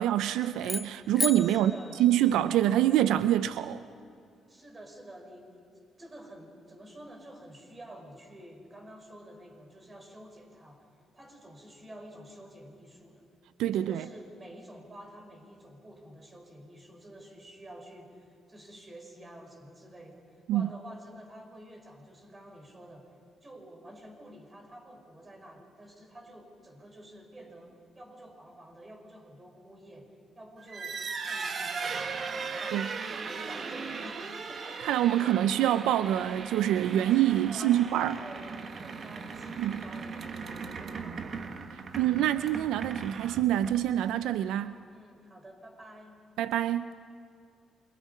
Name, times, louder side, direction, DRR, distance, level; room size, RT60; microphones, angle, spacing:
voice 1, 0.0-1.7 2.0-3.8 13.6-14.1 20.5-20.7 32.7-32.9 34.8-38.2 39.6-39.7 42.0-44.8 46.4-47.0, right 12 dB, 90° right, 13 dB, 0.5 m, -26 dB
sound 1, 0.6-2.9, left 2 dB, 15° left, 0.5 m, -36 dB
voice 2, 1.5-2.0 4.5-10.9 11.1-13.3 13.7-34.9 35.1-35.4 37.5-41.6 41.9-42.0 44.9-46.3, right 1 dB, 25° right, 3 dB, 5.0 m, -49 dB
sound 2, 30.6-44.0, right 5 dB, 50° right, 1.5 m, -38 dB
28.0 x 23.0 x 5.5 m, 2.4 s
cardioid pair, 90°, 0 cm